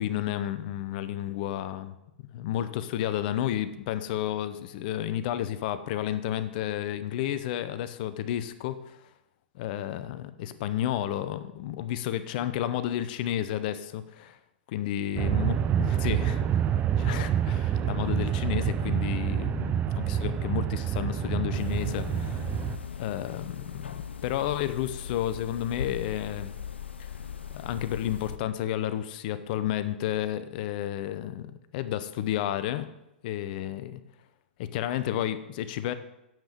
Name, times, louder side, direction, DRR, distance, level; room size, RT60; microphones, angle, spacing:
voice 1, 0.0-2.0 2.3-9.0 9.5-14.4 14.7-16.6 17.0-22.4 23.0-26.5 27.5-32.9 33.2-34.0 34.6-35.9, left 12 dB, 55° left, 12 dB, 0.8 m, -31 dB
sound 1, 15.2-22.8, right 9 dB, 25° right, 0.6 m, -27 dB
sound 2, 21.5-28.4, left 7 dB, 90° left, 0.7 m, -39 dB
9.2 x 7.6 x 5.2 m, 0.89 s
hypercardioid pair, 110°, 6 cm